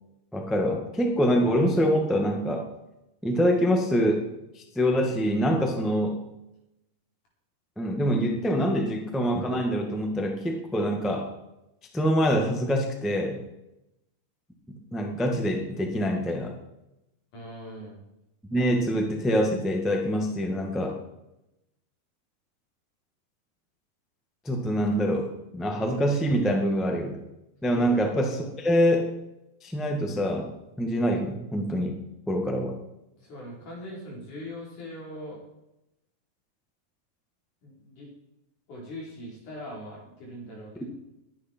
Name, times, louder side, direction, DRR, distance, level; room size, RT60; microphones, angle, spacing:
voice 1, 0.3-2.6 3.2-4.2 4.5-6.2 7.8-11.3 11.9-13.4 14.7-16.5 18.5-21.0 24.4-25.3 25.5-27.2 27.6-29.1 29.6-30.4 30.8-32.0 32.3-32.8, equal, ahead, 2 dB, 0.5 m, -25 dB
voice 2, 17.3-18.0 27.7-27.9 33.2-35.4 37.6-38.1 38.7-40.9, left 1 dB, 65° left, -3 dB, 5.8 m, -41 dB
21.0 x 9.8 x 4.5 m, 0.90 s
omnidirectional pair, 3.9 m